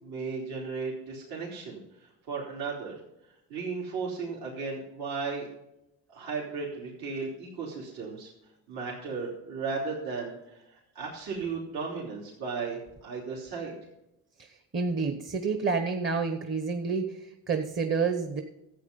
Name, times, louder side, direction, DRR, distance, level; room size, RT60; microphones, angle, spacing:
voice 1, 0.0-3.0 3.5-5.5 6.1-8.3 8.7-13.7, right 4 dB, 70° right, -4 dB, 3.4 m, -35 dB
voice 2, 14.4-18.4, right 4 dB, 30° right, 6 dB, 1.1 m, -29 dB
13.0 x 8.5 x 5.3 m, 0.88 s
cardioid pair, 115°, 39 cm